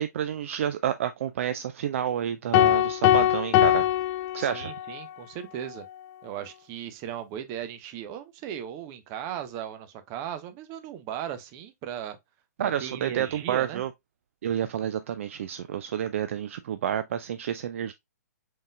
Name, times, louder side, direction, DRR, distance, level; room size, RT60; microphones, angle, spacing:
voice 1, 0.0-3.9 4.3-4.7 12.6-13.9 14.4-17.9, right 10 dB, 50° right, 0.3 m, -29 dB
sound 1, 2.5-5.0, left 12 dB, 25° left, 0.3 m, -22 dB
voice 2, 4.4-5.9 6.2-12.2 12.8-13.8, right 10 dB, 30° right, 0.7 m, -37 dB
5.2 x 3.7 x 2.3 m
figure-of-eight pair, 120°, 9 cm